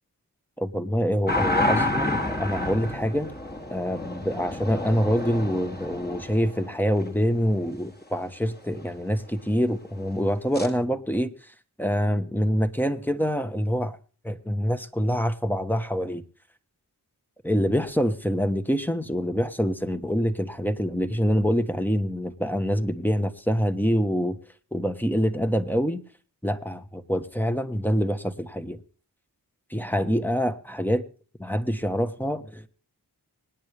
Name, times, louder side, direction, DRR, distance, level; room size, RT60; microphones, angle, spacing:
voice 1, 0.6-3.3 3.7-11.5 11.8-14.0 14.2-16.2 17.4-24.4 24.7-26.0 26.4-28.8 29.7-31.0 31.4-32.7, equal, 5° left, 8 dB, 1.3 m, -25 dB
sound 1, 1.3-7.1 10.5-10.7, left 1 dB, 25° left, 2.1 m, -29 dB
25.5 x 9.7 x 3.5 m, 0.40 s
wide cardioid pair, 55°, 40 cm